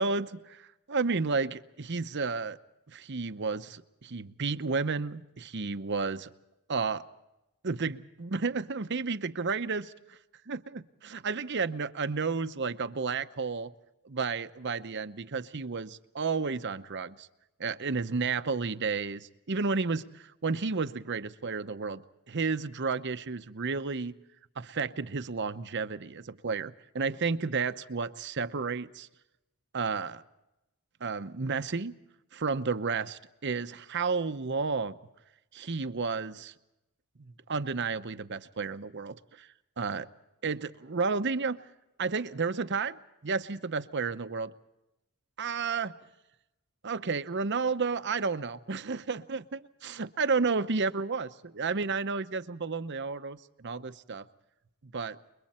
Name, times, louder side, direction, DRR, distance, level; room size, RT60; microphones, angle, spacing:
voice 1, 0.9-2.6 2.9-6.3 6.7-7.0 7.6-10.2 10.5-13.7 14.0-17.3 17.6-24.2 24.6-29.1 29.7-30.2 31.0-32.0 32.3-35.0 35.5-36.5 37.2-39.5 39.8-40.1 40.4-41.6 42.0-44.5 45.4-46.0 46.8-54.3 54.9-55.2, right 4 dB, 50° right, 11 dB, 0.8 m, -32 dB
29.0 x 22.5 x 4.3 m, 0.94 s
head